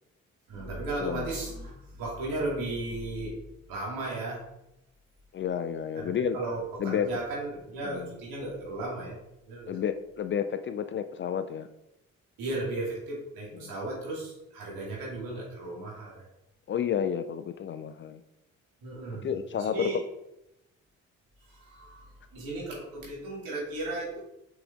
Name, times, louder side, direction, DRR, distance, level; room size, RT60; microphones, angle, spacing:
voice 1, 0.5-3.4 3.7-4.4 6.0-9.2 9.5-9.8 12.4-16.1 18.8-19.3 19.6-20.0 21.5-24.2, right 2 dB, 60° right, -3 dB, 2.6 m, -35 dB
voice 2, 1.0-1.3 5.3-6.4 6.8-7.1 7.8-8.1 9.7-11.7 13.5-13.7 16.7-18.2 19.2-19.9, left 8 dB, 30° left, 10 dB, 0.4 m, -31 dB
6.2 x 5.6 x 3.6 m, 0.87 s
figure-of-eight pair, 40°, 38 cm